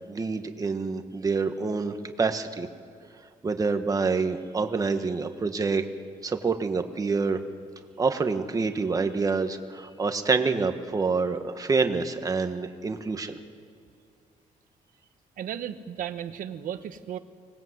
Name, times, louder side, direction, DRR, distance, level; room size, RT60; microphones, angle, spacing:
voice 1, 0.1-2.7 3.4-5.8 6.2-7.4 8.0-13.4, right 4 dB, 25° right, 7 dB, 1.5 m, -27 dB
voice 2, 15.4-17.2, right 10 dB, 75° right, 9 dB, 1.3 m, -35 dB
25.0 x 19.5 x 8.1 m, 2.4 s
cardioid pair, 150°, 14 cm